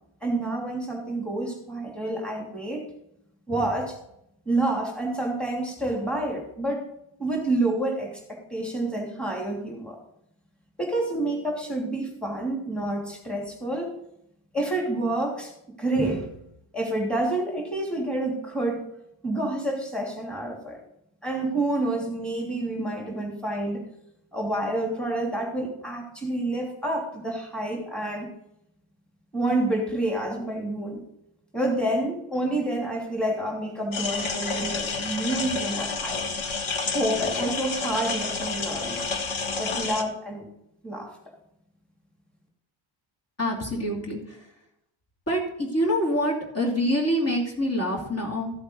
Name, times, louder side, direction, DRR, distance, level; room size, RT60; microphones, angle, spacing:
voice 1, 0.2-2.8 3.5-4.0 4.4-6.9 7.2-10.0 10.8-13.9 14.5-15.5 15.8-16.3 16.7-18.9 19.2-20.8 21.2-23.8 24.3-28.3 29.3-31.0 31.5-36.2 36.9-39.0 39.6-40.5 40.8-41.1, right 1 dB, ahead, -1 dB, 3.0 m, -28 dB
sound 1, 33.9-40.0, left 4 dB, 70° left, 1.6 m, -29 dB
voice 2, 43.4-44.5 45.3-48.5, equal, 30° left, -2 dB, 3.0 m, -26 dB
14.5 x 8.0 x 4.0 m, 0.76 s
cardioid pair, 110°, 50 cm